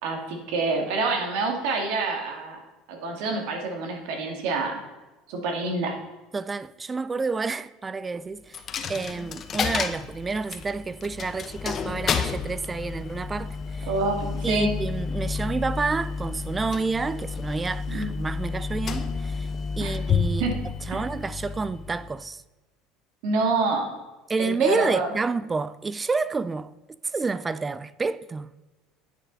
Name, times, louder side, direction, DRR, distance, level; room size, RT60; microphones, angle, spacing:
voice 1, 0.0-2.6 2.9-4.8 5.3-5.9 13.9-14.7 17.9-18.1 19.8-19.9 20.4-20.5 20.9-21.0 23.2-23.9 24.4-25.1, right 3 dB, 75° right, 2.3 m, -26 dB
voice 2, 6.3-8.6 8.9-13.9 14.4-19.5 19.8-20.5 20.9-22.4 24.3-26.7 27.0-28.5, right 4 dB, 20° right, 0.4 m, -29 dB
Coin (dropping), 8.5-22.3, left 5 dB, 35° left, 0.8 m, -31 dB
10.0 x 8.8 x 4.1 m
supercardioid pair, 115°, 0 cm